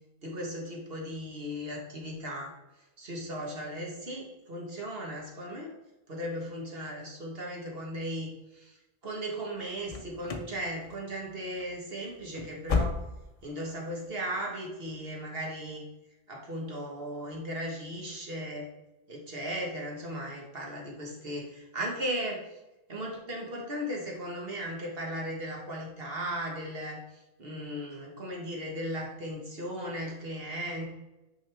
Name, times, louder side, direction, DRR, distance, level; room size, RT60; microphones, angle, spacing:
voice 1, 0.2-2.5 3.0-5.7 6.1-8.7 9.0-13.0 13.4-15.8 16.3-18.7 19.1-22.4 22.9-27.0 27.4-30.8, equal, 60° right, -1 dB, 1.6 m, -36 dB
sound 1, 9.8-10.6 10.8-11.3 11.6-11.7 12.2-13.4 13.7-13.8 14.4-14.5, left 4 dB, 40° left, 0.6 m, -32 dB
5.8 x 5.6 x 3.4 m, 1.0 s
omnidirectional pair, 1.1 m